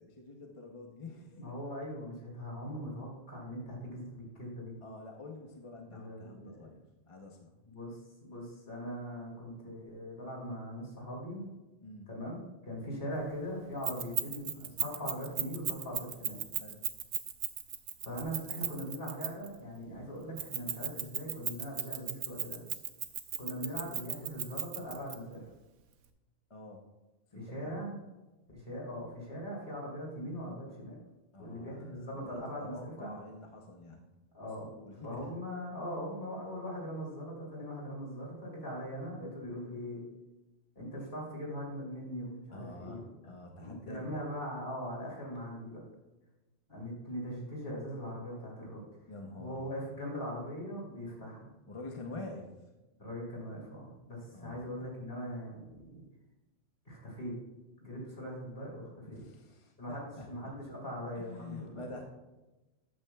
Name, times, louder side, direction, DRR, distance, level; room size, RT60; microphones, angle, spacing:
voice 1, 0.0-1.6 4.8-6.8 7.1-7.5 11.8-12.1 16.6-16.8 26.5-26.8 27.3-27.7 31.3-34.1 34.7-35.3 42.5-44.2 49.1-49.7 51.7-52.5 54.3-54.9 59.1-60.5 61.2-62.0, left 2 dB, 30° left, 2 dB, 0.7 m, -47 dB
voice 2, 1.3-4.8 5.9-6.7 7.7-11.4 12.1-16.4 18.0-22.6 23.4-25.4 27.3-28.0 28.5-31.0 31.4-33.1 34.3-34.7 35.0-40.0 40.7-43.1 43.6-45.8 46.7-48.8 49.4-51.5 53.0-56.0 56.8-57.3 57.8-59.2 59.8-62.0, equal, 50° left, -3 dB, 3.3 m, -41 dB
Keys jangling, 13.8-19.5 20.4-25.1, right 8 dB, 80° right, 1.1 m, -35 dB
13.0 x 8.7 x 2.3 m, 1.1 s
omnidirectional pair, 1.2 m